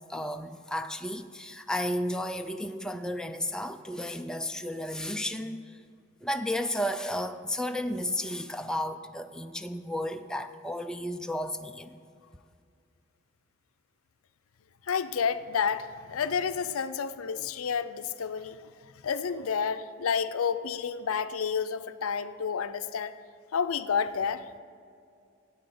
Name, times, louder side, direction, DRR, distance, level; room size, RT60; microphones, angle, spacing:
voice 1, 0.1-5.8 6.2-12.0, left 1 dB, 5° left, 7 dB, 0.3 m, -33 dB
voice 2, 14.9-18.6 19.0-23.1 23.5-24.4, left 6 dB, 80° left, 11 dB, 0.5 m, -30 dB
9.1 x 8.5 x 6.8 m, 2.3 s
head